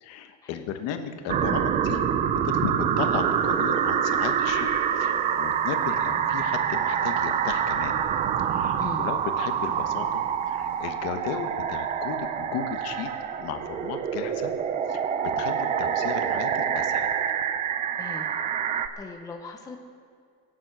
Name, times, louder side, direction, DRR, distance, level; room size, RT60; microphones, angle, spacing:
voice 1, 0.0-2.0 2.3-8.0 8.4-13.1 13.4-14.5 14.9-17.1, left 8 dB, 50° left, 7 dB, 1.2 m, -35 dB
sound 1, 1.3-18.9, right 8 dB, 25° right, 0.3 m, -26 dB
sound 2, 1.8-10.9, right 5 dB, 50° right, 1.9 m, -49 dB
sound 3, 4.0-14.6, left 3 dB, 80° left, 2.6 m, -51 dB
voice 2, 8.8-9.1 18.0-18.3 19.0-19.8, left 4 dB, 10° left, 2 dB, 0.7 m, -39 dB
23.0 x 7.7 x 6.0 m, 2.2 s
cardioid pair, 180°, 32 cm